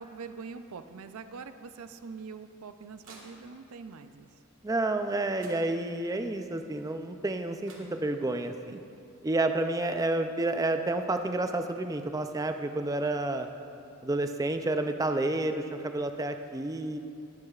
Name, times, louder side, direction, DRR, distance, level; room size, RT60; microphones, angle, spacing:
voice 1, 0.0-4.4, right 5 dB, 85° right, 10 dB, 0.5 m, -44 dB
sound 1, 2.4-3.8 5.0-5.1 5.4-6.2 7.3-7.4 7.6-8.5, right 2 dB, 65° right, 1.7 m, -55 dB
voice 2, 4.6-8.8 9.2-13.5 14.0-17.0, right 2 dB, 15° right, 7 dB, 0.4 m, -30 dB
19.5 x 7.8 x 2.4 m, 2.5 s
head